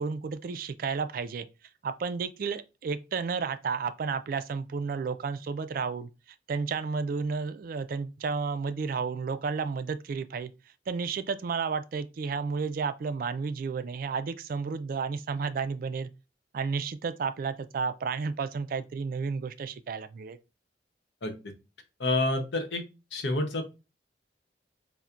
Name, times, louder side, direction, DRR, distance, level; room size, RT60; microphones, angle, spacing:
voice 1, 0.0-1.5 1.8-6.1 6.5-10.5 10.9-16.1 16.5-20.4, right 5 dB, 50° right, 0.3 m, -32 dB
voice 2, 21.2-21.5 22.0-22.8 23.1-23.6, left 2 dB, 75° left, 0.8 m, -28 dB
5.6 x 2.1 x 2.4 m
head